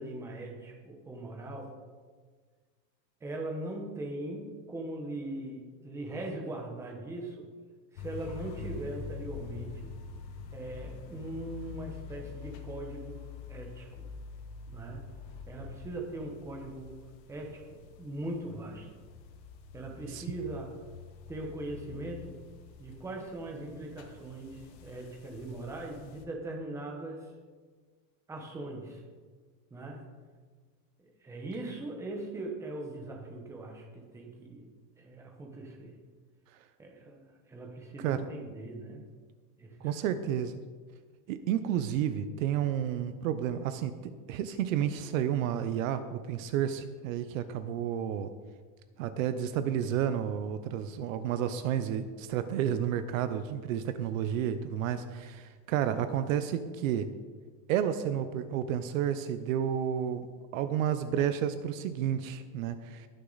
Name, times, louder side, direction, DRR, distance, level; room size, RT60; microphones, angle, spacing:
voice 1, 0.0-1.7 3.2-4.4 4.7-7.5 7.9-9.9 10.5-13.2 13.5-14.1 14.7-15.1 15.5-17.0 17.3-18.9 19.7-20.8 21.3-22.4 22.8-27.3 28.3-29.0 29.7-30.0 31.0-34.7 35.0-36.0 36.8-37.2 37.5-39.0 39.6-40.1, right 2 dB, 5° right, 1 dB, 0.9 m, -40 dB
sound 1, 8.0-26.2, left 5 dB, 85° left, 1.6 m, -46 dB
voice 2, 39.8-40.6 41.3-43.9 44.3-48.3 49.0-57.1 57.7-60.3 60.5-63.1, right 9 dB, 55° right, 11 dB, 0.7 m, -31 dB
19.5 x 6.6 x 4.0 m, 1.5 s
supercardioid pair, 175°, 49 cm